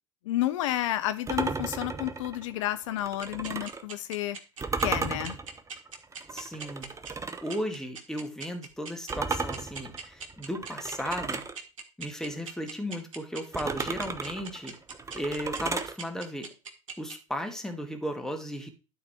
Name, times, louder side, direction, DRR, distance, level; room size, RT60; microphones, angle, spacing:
voice 1, 0.2-4.4 4.8-5.4, left 14 dB, 70° left, 13 dB, 0.6 m, -31 dB
sound 1, 1.3-3.8 4.6-7.6 9.1-11.6 13.5-15.9, right 4 dB, 20° right, 1.0 m, -34 dB
sound 2, 3.2-17.1, right 5 dB, 80° right, 1.6 m, -40 dB
voice 2, 6.3-6.9 7.4-11.4 12.0-14.7 15.1-16.5 17.0-18.7, equal, 5° left, 4 dB, 2.0 m, -35 dB
12.0 x 4.1 x 4.4 m, 0.33 s
hypercardioid pair, 80°, 17 cm